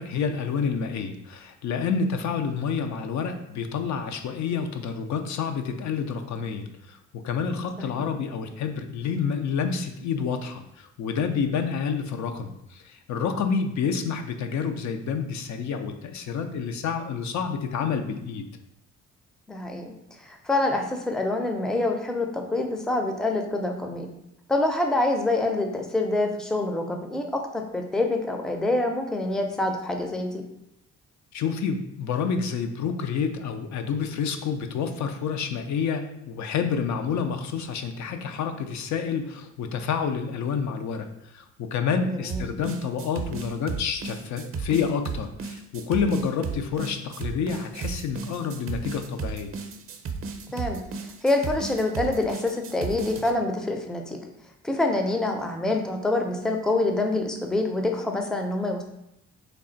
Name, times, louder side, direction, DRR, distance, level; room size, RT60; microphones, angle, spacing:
voice 1, 0.0-18.5 31.3-49.5, left 6 dB, 65° left, 6 dB, 0.5 m, -29 dB
voice 2, 19.5-19.9 20.3-24.1 24.5-30.4 42.2-42.4 50.5-50.8 51.2-54.2 54.6-58.8, left 2 dB, ahead, 3 dB, 0.4 m, -26 dB
sound 1, 42.3-53.3, right 5 dB, 45° right, 0.5 m, -34 dB
3.3 x 2.4 x 3.9 m, 0.82 s
cardioid pair, 90°, 30 cm